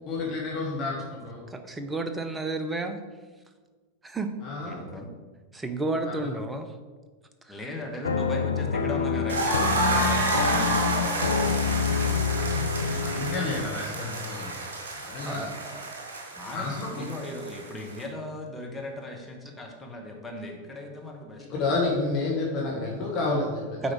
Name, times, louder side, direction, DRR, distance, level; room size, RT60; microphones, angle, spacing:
voice 1, 0.0-1.4 4.4-4.8 6.0-6.3 12.3-12.6 12.8-14.6 14.9-15.5 16.5-17.0 21.5-23.9, left 3 dB, 35° left, -2 dB, 1.5 m, -30 dB
voice 2, 1.5-3.0 4.0-4.3 5.5-6.7 7.4-7.6 15.2-16.0 23.8-23.9, right 2 dB, 10° right, 8 dB, 0.7 m, -31 dB
voice 3, 4.6-5.1 7.5-11.0 16.3-21.6, left 1 dB, 10° left, -1 dB, 1.2 m, -38 dB
sound 1, 8.0-13.6, left 5 dB, 75° left, 0.5 m, -27 dB
sound 2, 9.3-18.0, right 2 dB, 65° right, 1.6 m, -30 dB
8.0 x 4.8 x 4.6 m, 1.4 s
figure-of-eight pair, 90°, 0 cm